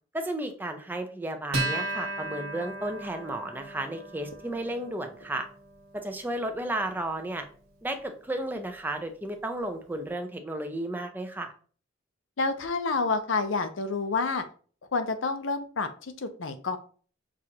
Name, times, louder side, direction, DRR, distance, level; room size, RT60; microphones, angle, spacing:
voice 1, 0.1-5.5 5.9-7.5 7.8-11.5, right 1 dB, 10° right, 5 dB, 0.5 m, -33 dB
Acoustic guitar, 1.5-8.4, right 2 dB, 85° right, 1.5 m, -37 dB
voice 2, 12.4-14.4 14.9-16.8, left 4 dB, 70° left, 8 dB, 0.6 m, -29 dB
6.1 x 2.5 x 2.8 m, 0.42 s
head